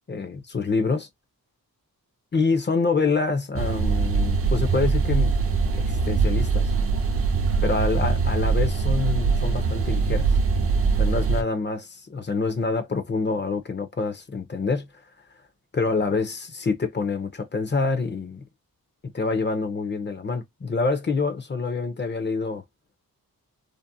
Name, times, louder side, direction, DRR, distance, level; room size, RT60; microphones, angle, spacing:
voice 1, 0.1-1.1 2.3-5.3 5.8-6.7 7.6-10.3 11.0-14.9 15.7-18.4 19.1-22.6, left 4 dB, 30° left, 0.5 m, -26 dB
sound 1, 3.6-11.4, right 4 dB, 40° right, 0.4 m, -22 dB
2.6 x 2.0 x 2.6 m
wide cardioid pair, 135°, 36 cm